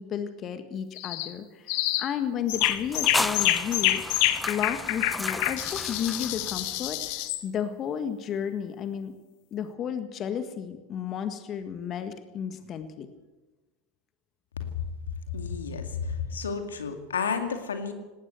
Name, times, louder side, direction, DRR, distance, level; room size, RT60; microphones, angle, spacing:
voice 1, 0.0-1.7 2.0-4.0 4.5-9.1 9.5-13.1, left 8 dB, 35° left, 9 dB, 1.8 m, -33 dB
sound 1, 1.0-1.3 1.7-2.1 2.5-7.4, left 15 dB, 55° left, 1.6 m, -27 dB
sound 2, 2.5-7.1, left 1 dB, 5° left, 1.1 m, -34 dB
voice 2, 15.3-17.9, left 5 dB, 75° left, 6 dB, 2.3 m, -31 dB
19.0 x 18.0 x 8.1 m, 1.2 s
figure-of-eight pair, 80°, 0 cm